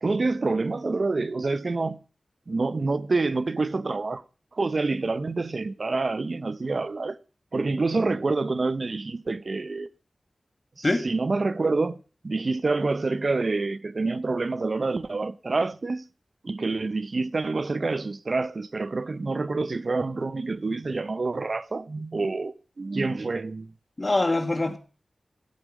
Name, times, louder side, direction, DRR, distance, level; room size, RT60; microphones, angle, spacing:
voice 1, 0.0-2.0 2.5-4.2 4.5-7.2 7.5-9.9 10.8-12.0 12.2-16.0 16.4-23.7, right 3 dB, 55° right, 0.7 m, -27 dB
voice 2, 24.0-24.8, left 2 dB, 35° left, 1.8 m, -24 dB
16.0 x 8.2 x 4.9 m
wide cardioid pair, 95°, 0 cm